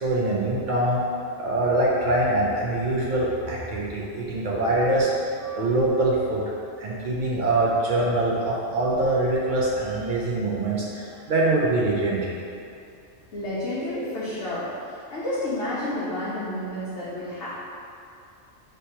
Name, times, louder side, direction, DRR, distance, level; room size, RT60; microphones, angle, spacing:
voice 1, 0.0-1.0 1.4-5.1 5.4-6.4 6.8-12.3, right 2 dB, 55° right, -5 dB, 0.6 m, -24 dB
voice 2, 13.3-14.7 15.1-17.5, left 1 dB, 70° left, -10 dB, 1.0 m, -30 dB
3.3 x 2.8 x 4.3 m, 2.6 s
omnidirectional pair, 1.3 m